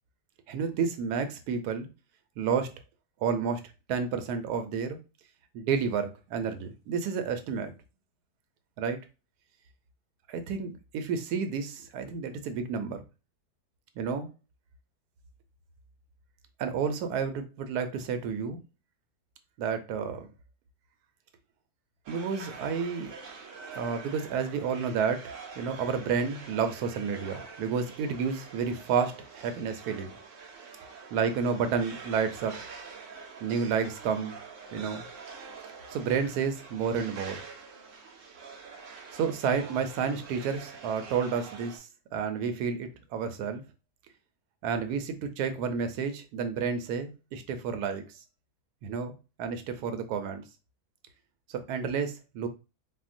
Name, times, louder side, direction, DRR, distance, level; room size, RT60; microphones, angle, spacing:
voice 1, 0.5-1.9 2.4-2.7 3.2-3.6 3.9-5.0 5.5-7.7 8.8-9.0 10.3-13.0 14.0-14.3 16.6-18.6 19.6-20.3 22.1-23.1 23.7-30.1 31.1-32.6 33.4-34.4 34.7-35.0 35.9-37.4 39.1-43.6 44.6-48.0 48.8-50.4 51.5-52.5, right 6 dB, 90° right, 8 dB, 1.1 m, -30 dB
sound 1, 22.1-41.8, right 5 dB, 60° right, 1.1 m, -46 dB
4.3 x 2.1 x 2.4 m, 0.29 s
omnidirectional pair, 1.6 m